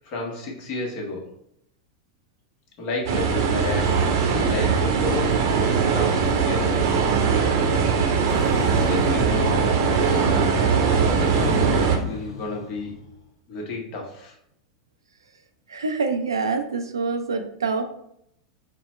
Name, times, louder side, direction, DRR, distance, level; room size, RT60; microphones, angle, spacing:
voice 1, 0.0-1.3 2.8-5.4 5.9-7.0 7.6-7.8 8.3-12.9 13.5-14.3, left 2 dB, 50° left, -1 dB, 1.2 m, -32 dB
sound 1, 3.1-12.0, right 5 dB, 60° right, 0.8 m, -21 dB
sound 2, 8.3-10.2 11.3-13.1, left 4 dB, 75° left, 0.8 m, -36 dB
voice 2, 15.7-17.8, right 4 dB, 90° right, 7 dB, 0.5 m, -26 dB
3.8 x 2.2 x 4.2 m, 0.74 s
hypercardioid pair, 95°, 2 cm